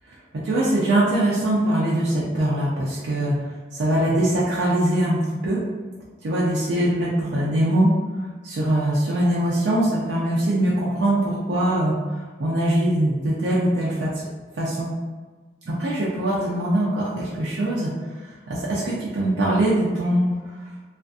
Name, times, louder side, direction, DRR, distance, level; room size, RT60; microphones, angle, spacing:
voice 1, 0.3-3.4 3.7-5.6 6.2-7.9 8.4-11.9 12.4-14.1 14.6-14.9 15.7-17.9 18.2-20.3, right 1 dB, 90° right, -7 dB, 0.5 m, -22 dB
2.5 x 2.4 x 2.3 m, 1.4 s
head